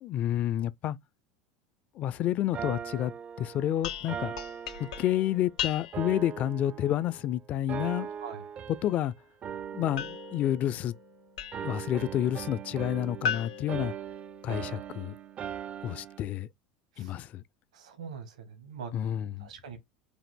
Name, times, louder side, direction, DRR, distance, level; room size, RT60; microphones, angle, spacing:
voice 1, 0.0-1.0 2.0-3.1 3.4-4.3 4.8-8.1 8.8-9.1 9.7-10.9 11.6-13.9 14.4-15.2 15.8-16.5 17.0-17.4 18.9-19.5, left 12 dB, 45° left, 0.4 m, -29 dB
sound 1, 2.5-5.5 5.9-7.3 7.7-9.1 9.4-11.1 11.5-16.2, right 8 dB, 35° right, 0.4 m, -40 dB
sound 2, 3.8-6.2 10.0-11.8 13.2-14.7, left 8 dB, 70° left, 0.8 m, -37 dB
voice 2, 17.7-18.9 19.4-19.8, right 6 dB, 75° right, 1.4 m, -42 dB
5.0 x 2.5 x 3.6 m
figure-of-eight pair, 75°, 4 cm